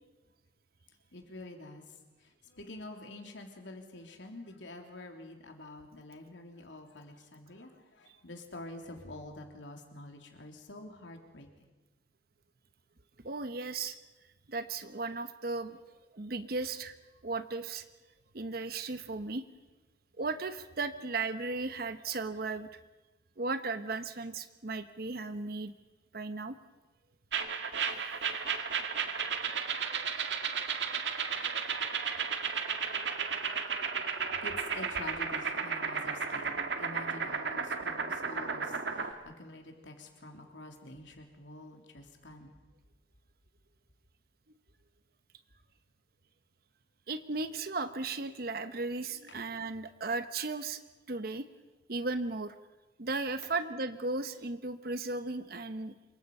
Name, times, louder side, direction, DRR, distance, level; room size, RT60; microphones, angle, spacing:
voice 1, 1.1-11.5 34.4-42.5 49.3-49.4, left 2 dB, 85° left, 3 dB, 3.4 m, -47 dB
voice 2, 13.2-14.0 14.5-15.8 16.1-16.9 17.2-17.8 18.3-19.4 20.2-22.7 23.4-25.7 26.1-26.6 47.1-50.8 51.1-51.4 51.9-52.5 53.0-55.9, right 3 dB, 55° right, 10 dB, 0.9 m, -35 dB
sound 1, 27.3-39.1, right 6 dB, 75° right, 1.8 m, -34 dB
27.0 x 24.0 x 5.5 m, 1.2 s
head